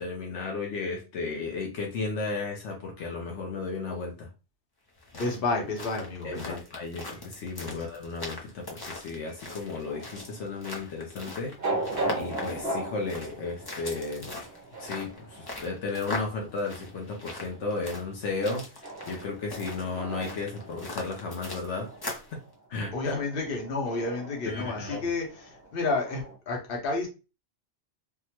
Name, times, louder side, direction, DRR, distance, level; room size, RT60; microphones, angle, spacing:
voice 1, 0.0-4.3 6.2-14.3 14.8-21.9 22.3-22.4 22.7-22.9 24.5-25.1, left 3 dB, 80° left, 1 dB, 1.0 m, -34 dB
sound 1, 4.9-22.4, left 2 dB, 30° left, 0.4 m, -41 dB
voice 2, 5.1-6.6 7.6-7.8 22.9-27.1, left 3 dB, 55° left, 0 dB, 1.1 m, -30 dB
sound 2, 9.8-26.4, right 2 dB, 60° right, 1.0 m, -39 dB
3.5 x 2.1 x 2.8 m, 0.31 s
omnidirectional pair, 1.2 m